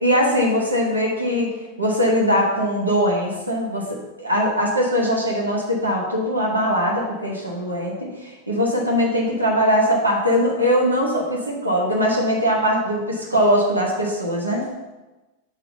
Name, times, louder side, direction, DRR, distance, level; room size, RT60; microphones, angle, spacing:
voice 1, 0.0-14.7, equal, 85° right, -2 dB, 1.2 m, -21 dB
6.2 x 3.8 x 5.4 m, 1.1 s
figure-of-eight pair, 90°, 0 cm